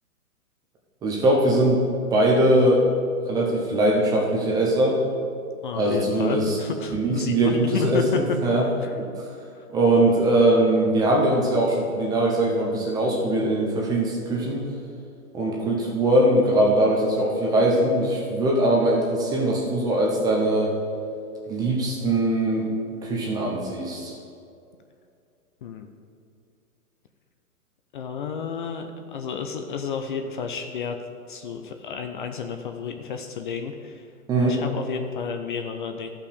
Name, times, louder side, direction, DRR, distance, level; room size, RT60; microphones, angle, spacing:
voice 1, 1.0-1.8 2.1-2.9 3.3-5.0 5.8-6.6 6.9-8.7 9.0-9.3 9.7-14.6 15.3-20.7 21.5-22.7 23.0-24.1 34.3-34.6, right 1 dB, 10° right, -2 dB, 0.6 m, -21 dB
voice 2, 5.6-8.2 8.8-8.9 9.6-9.7 25.6-25.9 27.9-31.0 31.3-34.1 34.4-36.1, left 6 dB, 35° left, 6 dB, 0.5 m, -31 dB
13.0 x 5.7 x 5.1 m, 2.5 s
hypercardioid pair, 145°, 44 cm